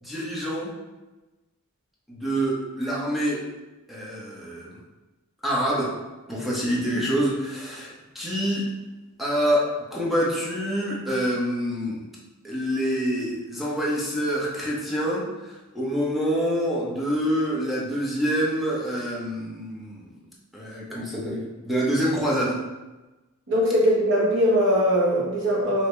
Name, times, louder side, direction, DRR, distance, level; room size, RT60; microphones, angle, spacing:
voice 1, 0.0-0.7 2.1-3.4 3.9-4.8 5.4-5.9 6.3-8.7 9.2-12.0 12.4-20.1 20.5-22.6, equal, ahead, -6 dB, 0.8 m, -26 dB
voice 2, 23.5-25.9, equal, 60° right, -4 dB, 1.2 m, -21 dB
4.8 x 2.8 x 3.3 m, 1.1 s
head